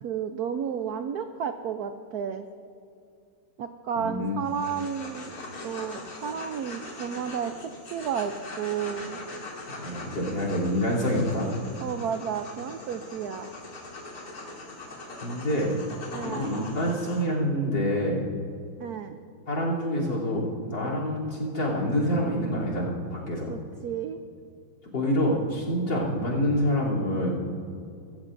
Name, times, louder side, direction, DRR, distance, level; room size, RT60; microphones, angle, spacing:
voice 1, 0.0-2.5 3.6-5.3 5.6-9.2 11.8-13.5 16.1-16.5 18.8-19.2 23.5-24.2, right 7 dB, 75° right, 8 dB, 0.8 m, -32 dB
voice 2, 4.0-4.4 9.8-11.5 15.2-15.8 16.2-18.3 19.5-23.5 24.9-27.4, equal, 60° left, -2 dB, 3.9 m, -27 dB
sound 1, 4.4-17.2, left 2 dB, 80° left, 3.3 m, -41 dB
23.5 x 14.5 x 2.6 m, 2.5 s
omnidirectional pair, 2.3 m